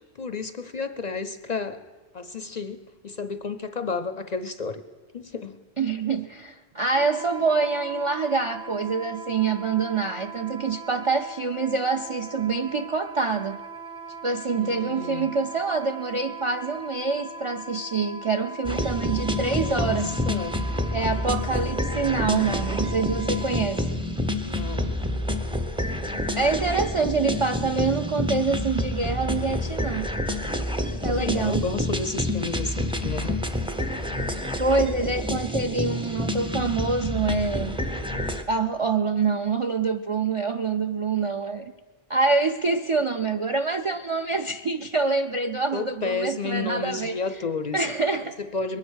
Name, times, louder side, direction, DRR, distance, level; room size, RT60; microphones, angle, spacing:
voice 1, 0.2-1.8 2.1-4.8 5.1-5.6 14.5-15.3 19.4-20.0 20.3-20.6 24.4-24.9 30.8-33.4 45.7-47.9 48.5-48.8, left 4 dB, 50° left, 11 dB, 0.5 m, -32 dB
voice 2, 5.8-13.6 14.2-20.2 20.9-23.8 26.4-30.1 31.0-31.6 34.6-37.8 38.5-41.7 42.1-47.4 47.7-48.3, right 4 dB, 50° right, 9 dB, 0.4 m, -26 dB
Wind instrument woodwind instrument, 6.9-23.7, right 3 dB, 75° right, 2.3 m, -40 dB
sound 1, 18.6-38.4, left 1 dB, 5° right, 0.6 m, -28 dB
21.5 x 9.7 x 6.3 m, 1.4 s
omnidirectional pair, 1.2 m